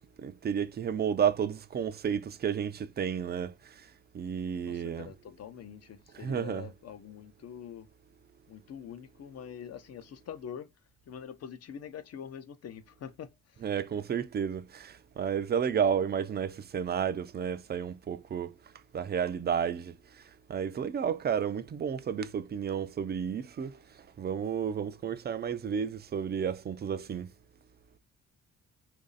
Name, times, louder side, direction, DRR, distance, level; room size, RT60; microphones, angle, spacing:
voice 1, 0.2-3.5 4.1-5.1 6.1-6.7 13.6-18.5 18.9-19.9 20.5-23.8 24.2-27.3, right 7 dB, 35° right, 0.4 m, -31 dB
voice 2, 4.7-7.9 8.5-10.7 11.1-13.6, left 8 dB, 55° left, 0.7 m, -45 dB
3.0 x 2.6 x 3.9 m
cardioid pair, 90°, 30 cm